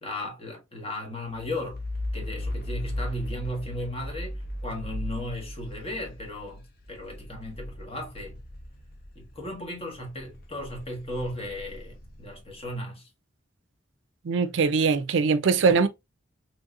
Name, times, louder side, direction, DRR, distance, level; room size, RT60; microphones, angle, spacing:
voice 1, 0.0-1.8 2.1-8.4 9.1-13.1, left 1 dB, 30° left, 1.1 m, -36 dB
sound 1, 1.3-9.5 9.9-12.5, left 1 dB, 50° left, 0.6 m, -37 dB
voice 2, 14.2-15.9, right 5 dB, 70° right, 0.4 m, -22 dB
3.1 x 2.7 x 2.3 m
head